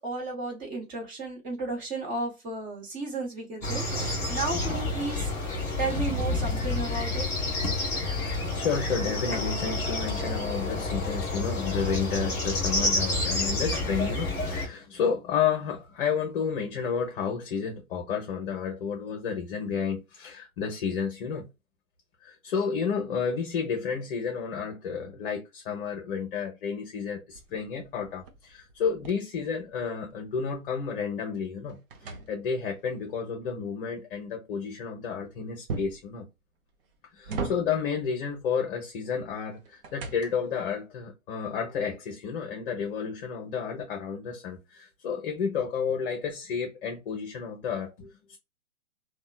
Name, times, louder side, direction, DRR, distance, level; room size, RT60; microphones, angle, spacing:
voice 1, 0.0-5.3 5.8-7.3, right 2 dB, 20° right, 1.1 m, -33 dB
sound 1, 3.6-14.7, left 2 dB, 5° left, 0.6 m, -29 dB
voice 2, 7.8-21.5 22.2-31.8 32.0-36.3 37.1-48.4, left 6 dB, 40° left, 0.7 m, -31 dB
sound 2, 27.3-30.2 30.6-32.9 35.7-36.1 36.8-38.0 39.3-40.6, right 3 dB, 40° right, 0.6 m, -39 dB
2.9 x 2.2 x 2.2 m
hypercardioid pair, 130°, 42 cm